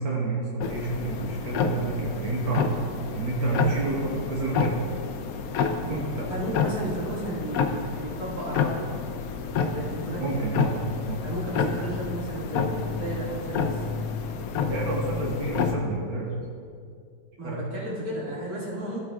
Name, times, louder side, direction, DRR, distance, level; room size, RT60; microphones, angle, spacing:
voice 1, 0.0-2.7 3.1-4.8 5.9-6.3 10.2-10.7 11.1-11.2 14.6-16.3 17.4-17.6, right 3 dB, 85° right, -3 dB, 1.9 m, -29 dB
sound 1, 0.6-15.7, left 5 dB, 80° left, 0.7 m, -29 dB
voice 2, 6.3-8.9 9.7-10.2 11.2-13.8 17.4-19.0, right 1 dB, 45° right, -7 dB, 2.6 m, -33 dB
14.5 x 7.0 x 2.4 m, 2.3 s
omnidirectional pair, 2.2 m